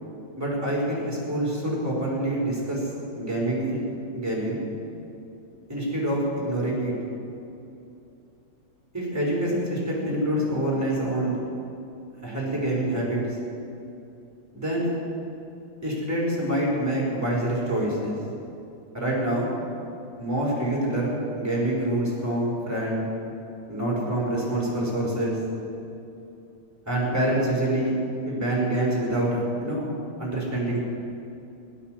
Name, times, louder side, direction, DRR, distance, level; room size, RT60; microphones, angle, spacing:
voice 1, 0.4-2.9 3.2-3.8 4.1-4.6 5.7-6.9 8.9-11.4 12.2-13.2 14.5-14.9 15.8-18.1 18.9-19.5 20.2-23.0 23.7-25.4 26.9-28.0 28.2-29.9 30.2-30.8, right 1 dB, 10° right, -4 dB, 4.2 m, -26 dB
17.0 x 10.0 x 7.6 m, 2.8 s
omnidirectional pair, 2.1 m